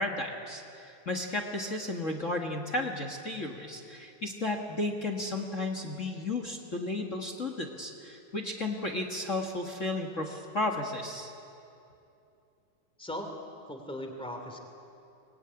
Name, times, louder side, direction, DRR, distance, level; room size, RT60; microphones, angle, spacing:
voice 1, 0.0-11.3, left 2 dB, 40° left, 3 dB, 1.1 m, -33 dB
voice 2, 13.0-13.3 13.7-14.6, left 1 dB, ahead, 4 dB, 2.3 m, -38 dB
24.5 x 20.5 x 9.8 m, 2.7 s
omnidirectional pair, 3.7 m